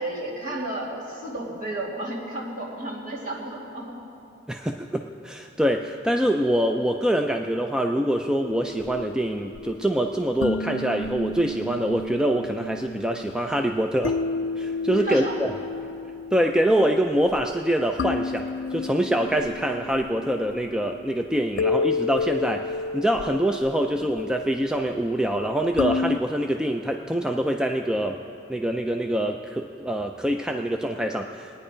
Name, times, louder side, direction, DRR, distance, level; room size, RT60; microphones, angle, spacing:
voice 1, 0.0-4.0 15.0-15.4, right 1 dB, 45° right, -4 dB, 2.6 m, -32 dB
voice 2, 4.5-14.2 14.6-15.5 16.3-28.2 28.5-31.6, right 1 dB, 5° right, 3 dB, 0.3 m, -25 dB
sound 1, 8.4-26.2, left 4 dB, 75° left, 0.4 m, -32 dB
20.0 x 9.6 x 5.0 m, 2.7 s
head